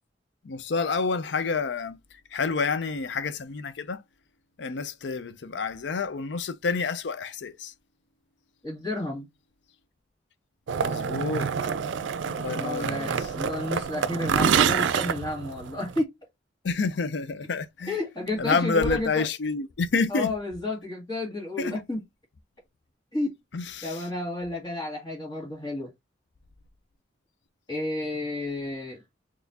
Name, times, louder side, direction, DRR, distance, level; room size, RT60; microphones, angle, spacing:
voice 1, 0.4-2.0 2.3-4.0 4.6-7.7 10.8-11.5 12.4-13.3 16.6-18.0 18.4-20.3 21.6-21.8 23.5-24.0, left 4 dB, 70° left, 0.5 m, -28 dB
voice 2, 8.6-9.3 12.5-16.1 17.9-19.2 20.1-22.0 23.1-23.3 23.8-25.9 27.7-29.0, left 2 dB, 25° left, 2.0 m, -31 dB
sound 1, 10.7-16.0, right 7 dB, 85° right, 0.4 m, -27 dB
4.2 x 3.1 x 2.7 m
head